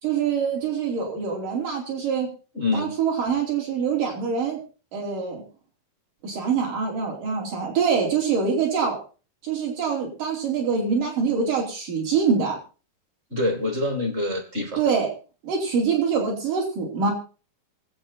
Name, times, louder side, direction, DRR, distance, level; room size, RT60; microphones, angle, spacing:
voice 1, 0.0-2.3 2.7-4.6 4.9-5.4 6.2-9.0 9.4-12.6 14.8-15.1 15.4-17.1, right 6 dB, 65° right, -2 dB, 6.0 m, -24 dB
voice 2, 2.5-2.9 13.3-14.8, left 2 dB, 25° right, 6 dB, 1.9 m, -26 dB
24.5 x 8.4 x 4.2 m, 0.35 s
omnidirectional pair, 4.1 m